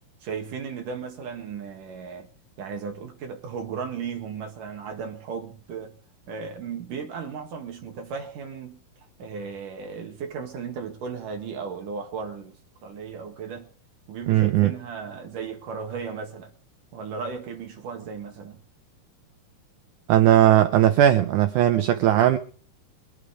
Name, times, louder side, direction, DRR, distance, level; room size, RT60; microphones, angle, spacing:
voice 1, 0.2-2.3 2.6-6.0 6.3-8.8 9.2-12.6 12.8-13.7 14.1-16.5 16.9-18.6, right 6 dB, 60° right, 3.2 m, -35 dB
voice 2, 14.3-14.7 20.1-22.4, right 12 dB, 85° right, 1.7 m, -18 dB
23.5 x 8.6 x 4.9 m
omnidirectional pair, 4.5 m